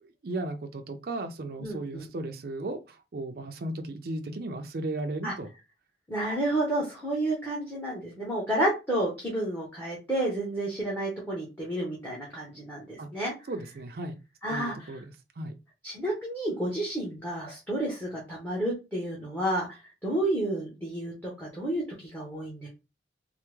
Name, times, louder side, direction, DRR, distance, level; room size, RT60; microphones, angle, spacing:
voice 1, 0.0-5.5 13.0-13.1 13.5-14.2 14.5-15.0 15.4-15.5, right 2 dB, 55° right, 0.4 m, -35 dB
voice 2, 1.6-2.1 5.2-5.3 6.1-13.5 14.4-14.9 15.8-22.7, right 1 dB, 10° left, 0.9 m, -31 dB
3.3 x 2.0 x 3.0 m
head